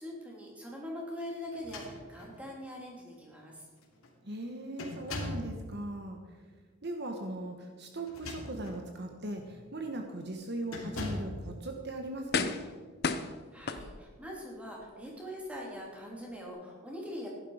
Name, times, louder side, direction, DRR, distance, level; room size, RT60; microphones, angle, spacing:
voice 1, 0.0-3.6 13.5-17.3, equal, 5° right, -3 dB, 3.2 m, -42 dB
sound 1, 1.5-2.4 3.3-3.4 3.8-4.1 4.8-5.5 8.0-8.8 9.4-9.6 10.7-11.4, left 2 dB, 85° left, 3.1 m, -40 dB
voice 2, 4.2-6.2 6.8-12.6, right 1 dB, 50° right, 4 dB, 1.2 m, -39 dB
sound 2, 11.4-11.5 12.3-12.8 13.0-14.3 14.8-14.9, left 4 dB, 50° left, 0.8 m, -33 dB
15.5 x 11.0 x 5.0 m, 1.5 s
head